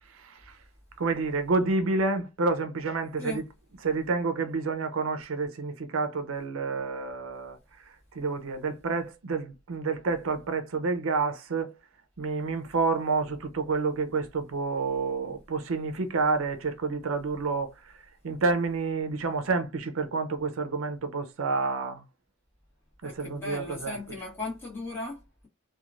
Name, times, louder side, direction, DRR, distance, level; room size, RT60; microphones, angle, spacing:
voice 1, 0.1-0.6 1.0-3.4 3.8-11.7 12.2-17.9 18.2-22.0 23.0-24.0, right 4 dB, 80° right, 0.5 m, -29 dB
voice 2, 23.0-25.5, left 2 dB, 10° left, 1.2 m, -37 dB
3.0 x 2.3 x 2.3 m
head